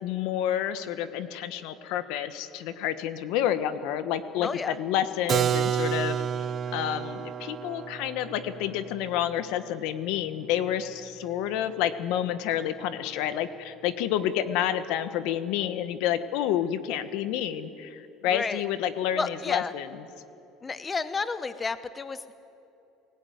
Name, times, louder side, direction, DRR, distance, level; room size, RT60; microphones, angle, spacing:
voice 1, 0.0-6.2 6.7-19.9, left 10 dB, 75° left, 11 dB, 1.3 m, -29 dB
voice 2, 4.4-4.8 18.3-18.6 19.2-19.7 20.6-22.3, left 4 dB, 20° left, 12 dB, 0.8 m, -31 dB
Keyboard (musical), 5.3-10.9, right 8 dB, 40° right, 0.6 m, -31 dB
23.0 x 17.0 x 9.5 m, 2.8 s
supercardioid pair, 120°, 0 cm